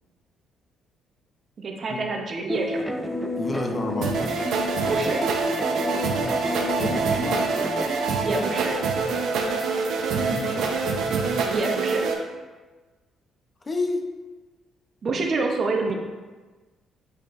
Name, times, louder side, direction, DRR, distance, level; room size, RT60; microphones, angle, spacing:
voice 1, 1.6-2.9 4.9-5.2 8.2-8.7 11.5-12.0 15.0-16.0, right 3 dB, 45° right, 2 dB, 0.9 m, -27 dB
sound 1, 2.5-7.9, left 1 dB, 5° right, 0.4 m, -30 dB
voice 2, 3.4-4.2 6.8-7.5 10.1-10.8 13.6-14.1, left 3 dB, 25° left, 4 dB, 0.7 m, -30 dB
sound 2, 4.0-12.1, right 4 dB, 75° right, 0.7 m, -25 dB
8.5 x 4.3 x 2.6 m, 1.3 s
cardioid pair, 110°, 0 cm